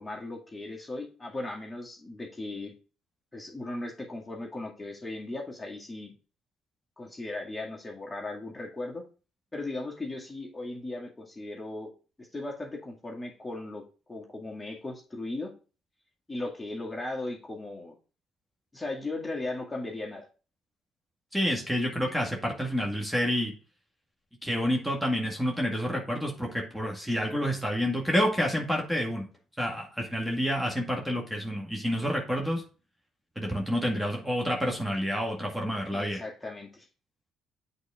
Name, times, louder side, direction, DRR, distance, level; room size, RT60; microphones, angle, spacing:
voice 1, 0.0-2.7 3.3-6.1 7.0-9.0 9.5-11.9 12.2-13.8 14.1-15.5 16.3-17.9 18.7-20.3 35.9-36.9, left 2 dB, 15° left, -1 dB, 2.0 m, -37 dB
voice 2, 21.3-23.5 24.4-29.3 29.6-32.6 33.4-36.2, equal, 5° right, 0 dB, 1.9 m, -29 dB
8.2 x 4.2 x 3.6 m, 0.36 s
hypercardioid pair, 55°, 0 cm